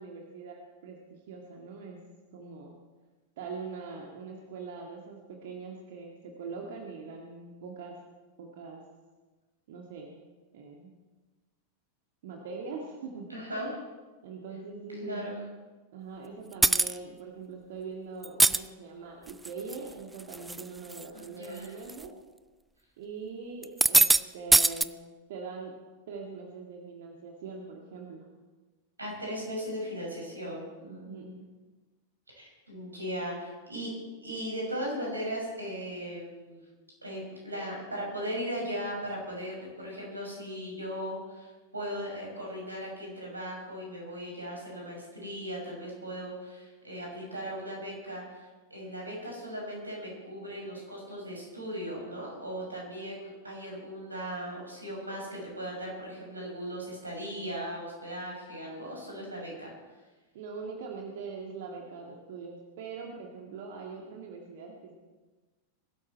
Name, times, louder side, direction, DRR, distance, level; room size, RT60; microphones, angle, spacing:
voice 1, 0.0-2.0 2.3-2.7 3.4-8.0 8.4-8.8 9.7-10.1 10.5-10.9 12.2-13.3 14.2-15.3 15.9-22.1 23.0-25.0 25.3-25.7 26.1-28.3 30.5-30.6 30.8-31.5 60.3-64.9, right 4 dB, 55° right, 0 dB, 2.0 m, -42 dB
voice 2, 13.3-13.8 15.0-15.4 21.1-21.7 29.0-31.4 32.3-36.6 37.0-59.7, equal, 80° right, -2 dB, 6.5 m, -38 dB
sound 1, 16.6-17.0 18.2-18.6 19.3-19.8 20.2-20.6 20.9-21.0 21.9-22.0 23.6-24.2 24.5-24.8, right 2 dB, 10° right, 0.4 m, -21 dB
22.0 x 12.5 x 4.5 m, 1.3 s
figure-of-eight pair, 90°, 0 cm